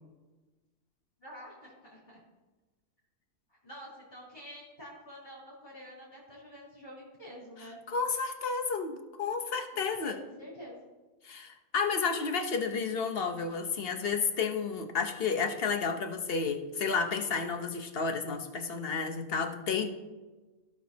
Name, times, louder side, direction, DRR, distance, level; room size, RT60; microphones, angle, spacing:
voice 1, 1.2-2.2 3.5-7.8 9.7-10.8, equal, 30° left, -8 dB, 3.6 m, -48 dB
voice 2, 7.9-10.2 11.2-19.9, left 5 dB, 45° left, 4 dB, 1.0 m, -31 dB
17.0 x 6.0 x 2.8 m, 1.2 s
omnidirectional pair, 1.6 m